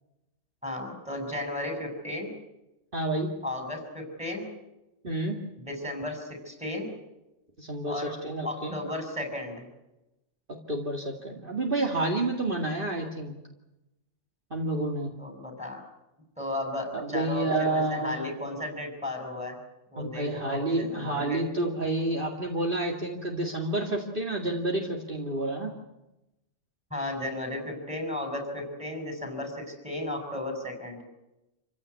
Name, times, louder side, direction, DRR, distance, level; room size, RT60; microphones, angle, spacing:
voice 1, 0.6-2.3 3.4-4.4 5.7-6.9 7.8-8.1 8.4-9.6 15.2-15.8 16.4-19.6 19.9-21.4 26.9-31.0, left 1 dB, 5° right, 4 dB, 6.5 m, -34 dB
voice 2, 2.9-3.3 5.0-5.4 7.6-8.8 10.7-13.3 14.5-15.1 16.9-18.2 20.0-25.7, right 2 dB, 45° right, 1 dB, 2.5 m, -29 dB
27.5 x 16.0 x 9.7 m, 0.96 s
omnidirectional pair, 1.2 m